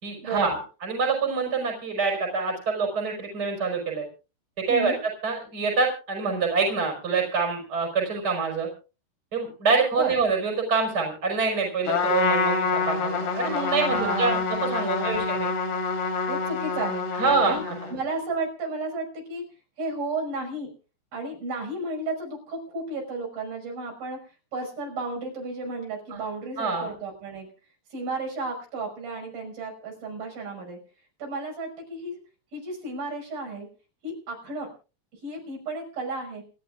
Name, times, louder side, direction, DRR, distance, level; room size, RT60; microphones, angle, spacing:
voice 1, 0.0-4.0 4.7-4.9 5.2-8.7 9.3-15.5 17.2-17.8 26.1-26.2 26.6-26.9, right 4 dB, 25° right, 1 dB, 5.6 m, -26 dB
Trumpet, 11.9-18.0, left 4 dB, 75° left, 4.7 m, -27 dB
voice 2, 13.9-14.6 15.0-15.3 16.3-17.0 17.4-17.6 17.9-19.4 19.8-20.7 21.1-24.2 24.5-27.5 27.9-30.8 31.2-32.2 32.5-33.7 34.0-34.7 35.2-36.4, right 3 dB, 65° right, 0 dB, 7.5 m, -33 dB
28.5 x 13.0 x 2.5 m, 0.34 s
omnidirectional pair, 4.7 m